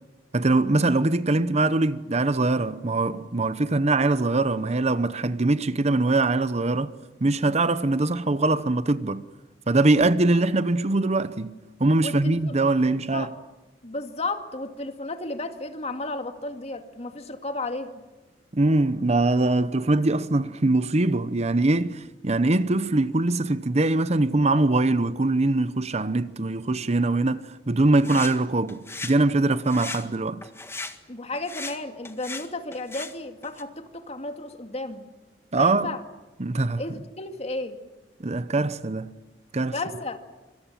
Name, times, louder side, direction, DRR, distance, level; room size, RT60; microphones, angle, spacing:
voice 1, 0.3-6.9 7.2-9.2 9.7-13.3 18.5-30.4 35.5-35.9 36.4-36.8 38.2-39.2 39.5-39.8, right 2 dB, 40° right, 0.9 m, -22 dB
voice 2, 12.0-12.5 13.1-13.3 13.8-17.9 31.1-35.1 35.5-36.0 36.8-37.8 39.7-40.2, left 2 dB, 40° left, 2.3 m, -33 dB
sound 1, 27.9-28.4 28.7-29.2 29.5-30.1 30.4-31.0 31.3-31.8 32.0-33.1 33.4-33.6, left 3 dB, 15° left, 1.7 m, -37 dB
25.5 x 25.5 x 7.5 m
head